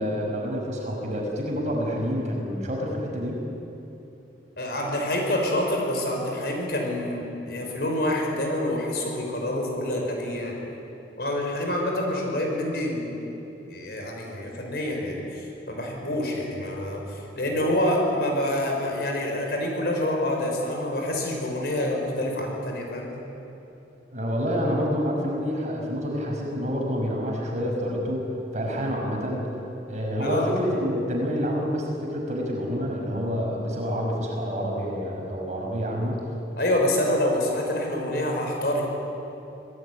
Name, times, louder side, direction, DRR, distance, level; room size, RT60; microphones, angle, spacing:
voice 1, 0.0-3.4 24.1-28.2 28.5-29.5 29.9-36.2, equal, 40° right, 0 dB, 5.8 m, -28 dB
voice 2, 4.6-10.6 11.2-13.1 13.7-23.1 30.2-30.6 36.6-38.8, left 1 dB, 60° left, 1 dB, 5.8 m, -27 dB
25.5 x 18.0 x 9.8 m, 3.0 s
head